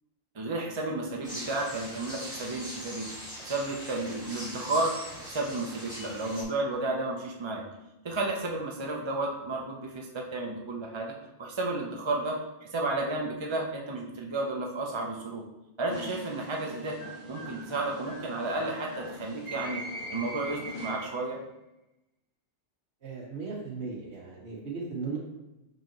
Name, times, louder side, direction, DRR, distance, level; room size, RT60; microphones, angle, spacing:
voice 1, 0.3-3.1 3.4-4.9 5.2-7.7 8.0-11.1 11.4-12.4 12.7-15.5 15.8-17.0 17.3-19.8 20.1-21.4, right 2 dB, 30° right, -1 dB, 0.6 m, -32 dB
sound 1, 1.2-6.4, equal, 5° right, 1.8 m, -41 dB
sound 2, 15.9-21.3, equal, 60° left, 2.3 m, -41 dB
voice 2, 23.0-25.2, right 4 dB, 60° right, -4 dB, 1.2 m, -36 dB
5.8 x 5.4 x 3.0 m, 0.95 s
omnidirectional pair, 1.2 m